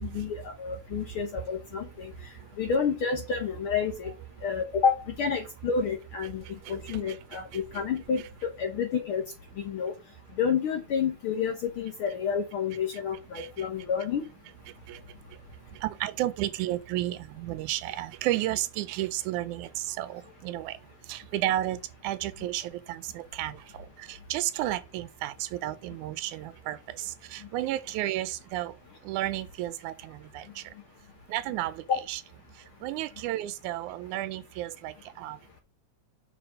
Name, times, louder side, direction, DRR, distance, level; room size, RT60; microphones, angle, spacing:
voice 1, 0.0-2.1 2.6-4.1 4.4-6.4 6.7-8.2 8.6-9.2 9.6-9.9 10.4-14.2, left 6 dB, 65° left, 1.3 m, -29 dB
voice 2, 0.9-1.2 1.7-2.7 4.0-4.1 6.3-7.8 12.7-12.8 13.3-13.9 14.7-28.8 29.0-30.7 31.3-32.2 32.5-35.4, right 14 dB, 85° right, 2.0 m, -33 dB
6.0 x 5.0 x 4.9 m
omnidirectional pair, 3.5 m